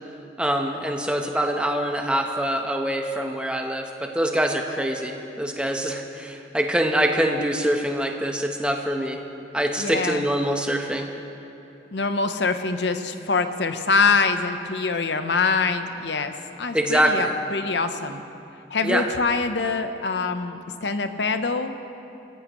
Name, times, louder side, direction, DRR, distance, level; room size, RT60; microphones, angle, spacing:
voice 1, 0.4-9.2 9.5-11.1 16.7-17.3 18.8-19.0, right 1 dB, 5° right, 3 dB, 1.0 m, -24 dB
voice 2, 9.8-10.3 11.9-18.2 18.7-21.7, left 4 dB, 75° left, 8 dB, 0.8 m, -24 dB
25.0 x 16.0 x 3.1 m, 2.8 s
head